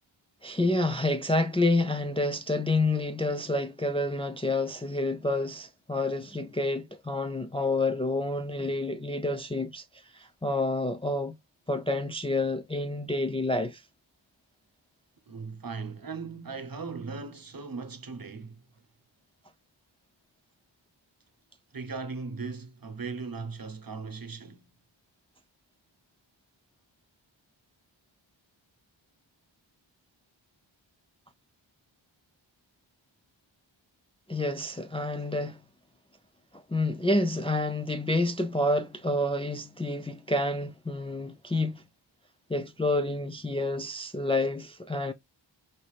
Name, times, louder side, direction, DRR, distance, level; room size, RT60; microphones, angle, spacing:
voice 1, 0.4-11.3 11.7-13.8 34.3-35.6 36.5-41.8 42.5-45.1, left 2 dB, 15° left, 0.3 m, -28 dB
voice 2, 15.3-18.6 21.7-24.6, right 4 dB, 50° right, 0.8 m, -38 dB
4.1 x 3.2 x 2.3 m
wide cardioid pair, 65°, 47 cm